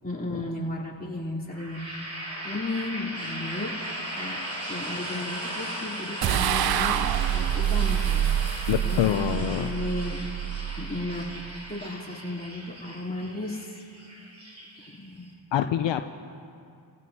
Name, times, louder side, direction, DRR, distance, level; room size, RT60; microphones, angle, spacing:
voice 1, 0.0-7.1 7.3-8.3 8.8-10.2 10.8-13.8 15.0-15.3, left 2 dB, 20° left, -4 dB, 3.3 m, -34 dB
sound 1, 1.5-15.3, right 1 dB, 35° right, 4.6 m, -37 dB
sound 2, 6.2-11.6, right 11 dB, 55° right, 0.5 m, -27 dB
voice 2, 8.7-9.7 15.5-16.0, left 10 dB, 75° left, 8 dB, 0.6 m, -25 dB
25.5 x 16.0 x 2.8 m, 2.4 s
cardioid pair, 55°, 45 cm